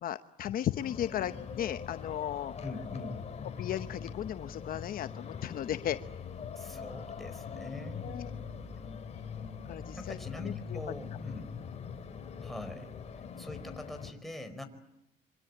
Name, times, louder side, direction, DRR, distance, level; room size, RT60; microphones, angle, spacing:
voice 1, 0.0-2.5 3.6-6.0 8.0-8.3 9.7-10.8, left 11 dB, 60° left, 11 dB, 1.0 m, -35 dB
sound 1, 0.7-14.1, left 6 dB, 40° left, 3.5 m, -42 dB
voice 2, 2.6-3.2 6.6-8.1 10.0-11.5 12.4-12.9 13.4-14.6, left 1 dB, ahead, 5 dB, 4.7 m, -43 dB
27.0 x 25.0 x 8.6 m, 0.86 s
cardioid pair, 110°, 17 cm